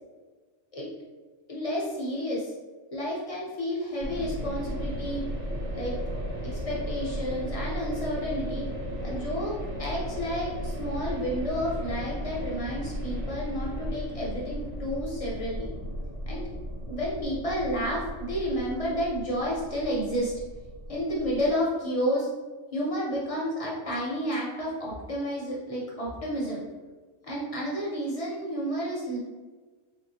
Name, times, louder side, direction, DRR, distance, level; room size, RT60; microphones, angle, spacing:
voice 1, 1.5-2.5 2.9-5.3 5.7-5.9 6.4-8.7 9.0-15.7 16.3-16.5 16.9-20.3 20.9-22.3 22.7-26.6 27.2-29.2, equal, 40° left, -5 dB, 0.5 m, -31 dB
sound 1, 4.0-21.5, equal, 50° right, 1.0 m, -35 dB
3.4 x 2.6 x 2.7 m, 1.4 s
omnidirectional pair, 1.3 m